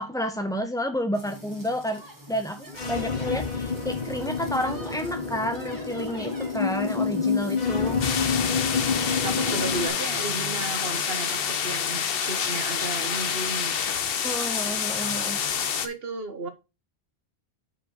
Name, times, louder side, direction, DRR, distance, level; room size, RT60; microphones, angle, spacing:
voice 1, 0.0-2.0 2.3-8.0 14.2-15.4, equal, 5° left, 0.4 m, -30 dB
sound 1, 1.1-15.9, right 1 dB, 15° right, 2.1 m, -45 dB
sound 2, 2.7-9.9, left 5 dB, 40° left, 1.2 m, -28 dB
sound 3, 8.0-15.9, left 7 dB, 60° left, 0.9 m, -28 dB
voice 2, 9.0-13.8 15.5-16.5, right 3 dB, 60° right, 1.6 m, -34 dB
5.2 x 4.9 x 6.4 m
omnidirectional pair, 1.1 m